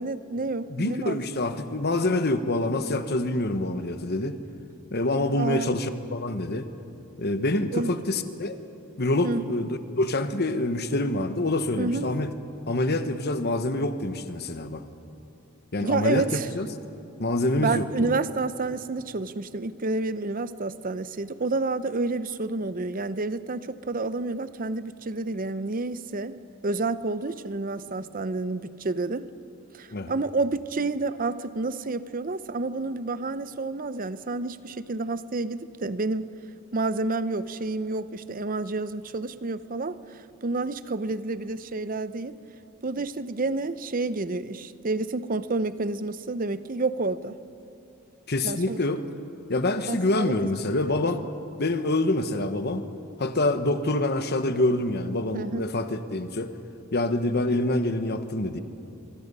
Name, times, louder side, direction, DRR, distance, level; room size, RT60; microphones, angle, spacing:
voice 1, 0.0-1.2 5.3-5.7 7.7-8.0 9.2-9.4 11.8-12.1 15.8-16.5 17.6-26.4 26.6-29.3 29.7-36.3 36.7-40.0 40.4-42.3 42.8-47.4 48.4-48.8 49.9-50.5 51.0-51.1 55.3-55.7, right 3 dB, 40° right, 14 dB, 0.7 m, -29 dB
voice 2, 0.7-4.4 4.9-6.6 7.2-8.6 9.0-12.3 12.7-14.8 15.7-16.7 17.2-18.1 29.9-30.1 48.3-49.0 49.5-51.2 51.6-52.8 53.2-56.5 56.9-58.6, left 2 dB, 50° left, 9 dB, 1.2 m, -26 dB
25.0 x 25.0 x 5.5 m, 2.8 s
head